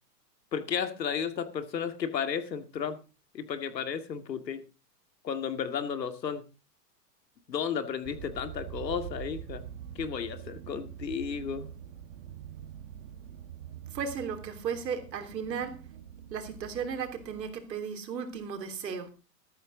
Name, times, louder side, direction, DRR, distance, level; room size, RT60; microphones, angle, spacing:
voice 1, 0.5-3.0 3.3-4.6 5.2-6.4 7.5-9.6 10.0-11.7, left 7 dB, 90° left, 2.2 m, -33 dB
sound 1, 8.0-17.5, right 10 dB, 50° right, 2.1 m, -44 dB
voice 2, 13.9-15.8 16.3-19.1, right 6 dB, 85° right, 3.3 m, -35 dB
13.5 x 12.5 x 3.8 m
hypercardioid pair, 135°, 49 cm